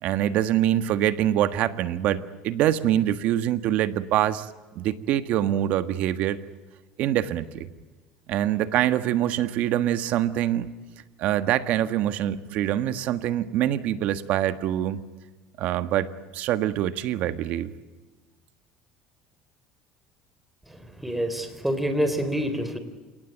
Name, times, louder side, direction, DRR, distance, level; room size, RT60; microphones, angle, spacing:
voice 1, 0.0-4.5 4.7-6.4 7.0-7.7 8.3-10.7 11.2-15.0 15.6-17.7, right 12 dB, 60° right, 12 dB, 1.5 m, -24 dB
voice 2, 21.0-22.8, equal, 5° right, 9 dB, 3.8 m, -26 dB
29.0 x 18.5 x 9.1 m, 1.3 s
supercardioid pair, 120°, 3 cm